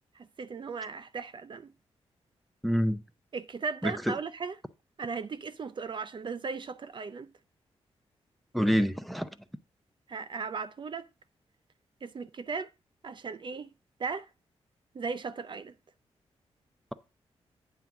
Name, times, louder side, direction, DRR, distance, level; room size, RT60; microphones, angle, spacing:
voice 1, 0.2-1.7 3.3-4.6 5.0-7.3 10.1-11.1 12.0-12.7 13.0-13.7 14.0-14.3 14.9-15.7, right 5 dB, 45° right, 0.5 m, -37 dB
voice 2, 2.6-3.0 3.8-4.1 8.5-9.3, equal, ahead, 0.7 m, -26 dB
9.1 x 3.7 x 7.0 m
cardioid pair, 95°, 11 cm